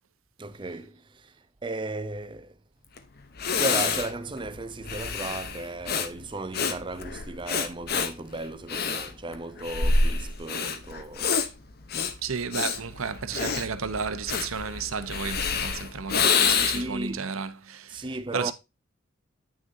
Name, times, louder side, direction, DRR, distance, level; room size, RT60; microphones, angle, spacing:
voice 1, 0.4-2.6 3.5-11.4 16.6-17.3 17.9-18.5, right 2 dB, 25° right, 0.6 m, -35 dB
Breathing, 3.0-3.1 3.4-17.0, left 5 dB, 50° left, 0.8 m, -27 dB
voice 2, 12.2-18.1 18.3-18.5, right 5 dB, 85° right, 0.8 m, -32 dB
9.1 x 6.4 x 2.7 m
head